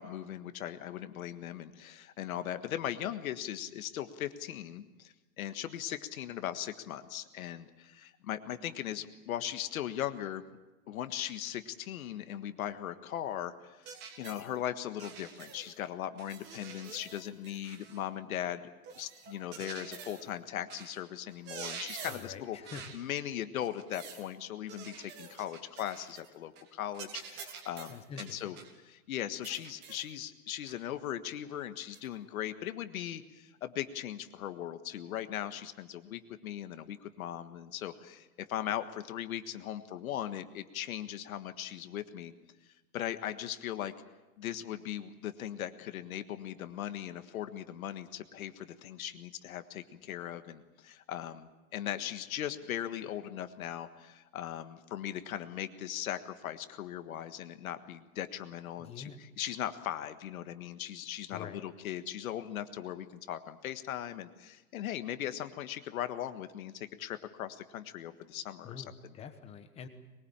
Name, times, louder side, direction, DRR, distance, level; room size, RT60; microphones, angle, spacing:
voice 1, 0.0-10.5 10.9-18.6 19.0-22.6 22.9-28.6 28.8-42.3 42.9-43.9 44.4-69.1, left 11 dB, 65° left, 10 dB, 1.6 m, -39 dB
sound 1, 13.8-14.5 15.0-15.8 16.2-18.1 18.8-20.3 20.7-21.0 21.3-22.3 22.6-23.0 23.6-24.3 24.7-26.3 26.6-26.7 26.9-28.8 29.4-30.1 30.7-30.8 31.9-32.1, right 6 dB, 25° right, 1.8 m, -47 dB
voice 2, 22.1-22.9 27.9-28.6 58.8-59.2 61.3-61.6 68.6-69.9, left 6 dB, 15° left, 8 dB, 1.2 m, -46 dB
22.5 x 20.5 x 8.9 m, 1.1 s
supercardioid pair, 165°, 45 cm